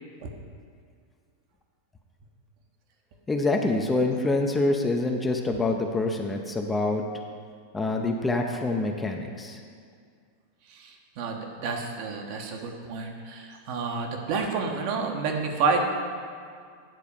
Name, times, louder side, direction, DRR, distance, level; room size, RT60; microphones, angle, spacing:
voice 1, 3.3-7.0 7.7-9.6, left 2 dB, 15° left, 3 dB, 0.7 m, -26 dB
voice 2, 10.7-15.8, right 5 dB, 45° right, 2 dB, 1.2 m, -29 dB
9.2 x 4.7 x 6.8 m, 2.1 s
figure-of-eight pair, 90°, 0 cm